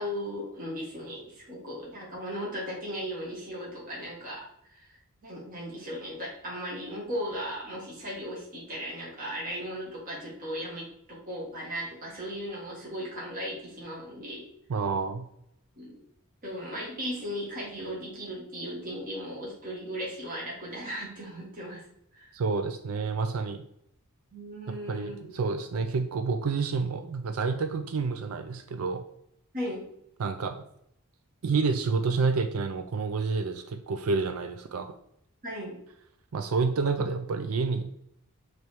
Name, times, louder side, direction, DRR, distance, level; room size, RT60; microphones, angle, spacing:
voice 1, 0.0-14.4 15.8-16.0 16.4-21.9 22.1-22.2 24.3-25.3 29.5-29.9 35.4-35.8, equal, 40° right, -4 dB, 1.6 m, -37 dB
voice 2, 14.7-15.2 22.3-23.6 24.7-29.0 30.2-30.6 31.4-34.9 36.3-37.9, right 4 dB, 70° right, 8 dB, 0.4 m, -29 dB
6.8 x 3.2 x 4.6 m, 0.74 s
head